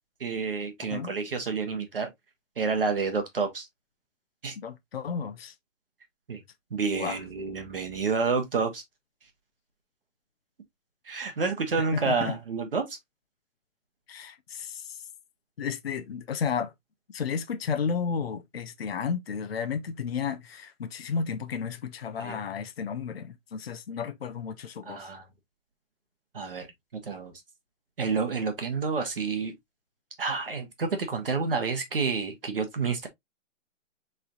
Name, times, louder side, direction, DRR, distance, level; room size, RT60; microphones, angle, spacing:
voice 1, 0.2-2.1 2.6-3.7 4.4-4.5 6.3-6.4 6.7-8.8 11.0-13.0 22.2-22.4 24.9-25.2 26.3-26.7 26.9-27.3 28.0-29.5 30.2-33.1, right 4 dB, 45° right, 0.9 m, -29 dB
voice 2, 4.6-5.5 7.0-7.2 11.9-12.3 14.1-15.0 15.6-16.7 17.1-25.1, left 6 dB, 50° left, 0.6 m, -32 dB
6.4 x 3.4 x 2.3 m
hypercardioid pair, 180°, 39 cm